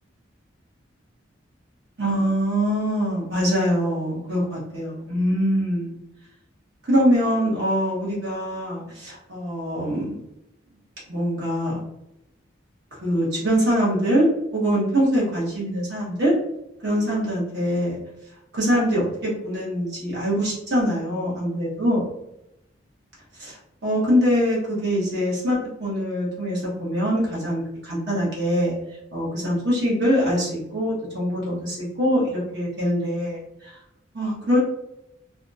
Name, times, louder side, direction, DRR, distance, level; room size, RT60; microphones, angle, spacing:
voice 1, 2.0-5.9 6.9-10.2 11.1-11.8 13.0-14.3 14.5-16.3 16.8-18.0 18.5-22.0 23.4-23.6 23.8-28.7 29.1-33.8 34.1-34.6, equal, 60° right, -6 dB, 1.1 m, -23 dB
2.6 x 2.3 x 2.6 m, 0.84 s
head